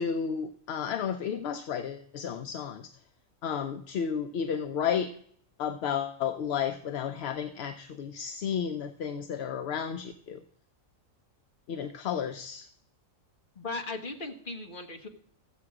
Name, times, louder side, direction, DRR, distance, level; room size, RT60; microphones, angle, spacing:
voice 1, 0.0-2.9 3.4-5.1 5.6-10.4 11.7-12.7, left 7 dB, 60° left, 9 dB, 0.7 m, -32 dB
voice 2, 13.5-15.1, left 3 dB, 40° left, 4 dB, 1.4 m, -37 dB
14.5 x 7.8 x 4.8 m, 0.63 s
omnidirectional pair, 1.4 m